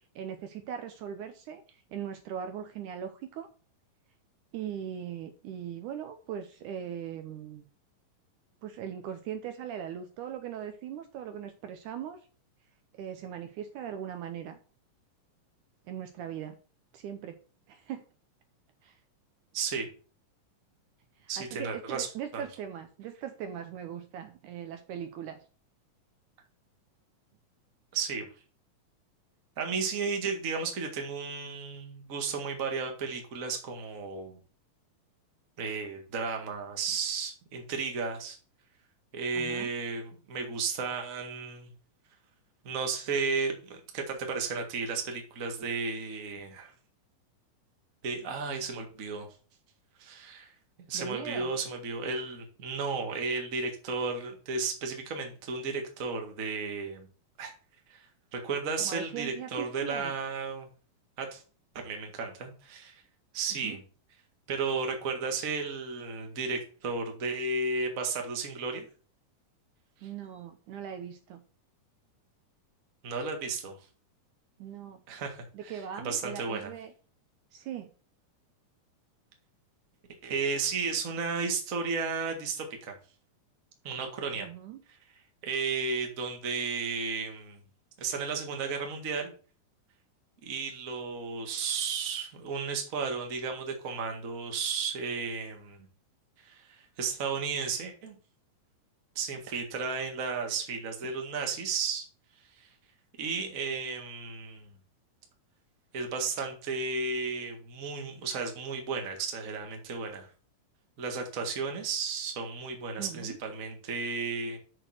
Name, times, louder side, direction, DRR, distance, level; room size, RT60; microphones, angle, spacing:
voice 1, 0.2-3.5 4.5-7.7 8.6-12.2 13.0-14.6 15.9-16.6 16.9-17.4 17.7-18.0 18.8-19.0 21.2-25.4 39.4-39.7 50.9-51.5 58.8-60.1 63.5-63.8 70.0-71.4 74.6-75.0 75.5-76.9 77.5-77.9 84.3-84.8 113.0-113.4, right 9 dB, 75° right, 8 dB, 2.1 m, -40 dB
voice 2, 19.5-19.9 21.3-22.1 22.3-22.4 27.9-28.3 29.6-34.4 35.6-38.4 39.1-41.7 42.6-46.7 48.0-49.3 50.0-50.5 50.9-57.1 57.4-57.5 57.9-58.1 58.3-60.7 61.2-61.4 61.7-63.0 63.3-63.8 64.5-68.8 73.0-73.8 75.1-76.7 80.2-82.9 83.8-84.5 85.4-87.6 88.0-89.3 90.4-95.9 96.4-98.1 99.1-102.0 102.6-102.7 103.2-104.7 105.9-110.3 111.0-114.6, right 4 dB, 35° right, 3 dB, 1.4 m, -33 dB
6.8 x 6.1 x 6.3 m, 0.38 s
omnidirectional pair, 3.9 m